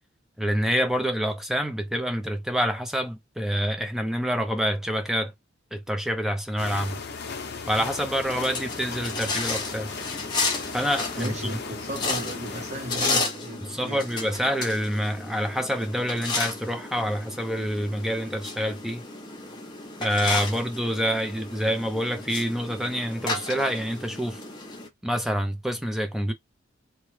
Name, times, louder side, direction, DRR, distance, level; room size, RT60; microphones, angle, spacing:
voice 1, 0.4-5.3 5.7-7.0 7.7-9.9 10.7-11.6 13.6-19.0 20.0-24.4 25.0-26.3, equal, ahead, 0.5 m, -27 dB
sound 1, 6.6-13.2, left 5 dB, 55° left, 0.7 m, -37 dB
sound 2, 8.2-24.9, left 3 dB, 25° left, 0.9 m, -33 dB
voice 2, 11.2-14.1, right 1 dB, 40° right, 0.8 m, -35 dB
3.0 x 2.2 x 3.2 m
head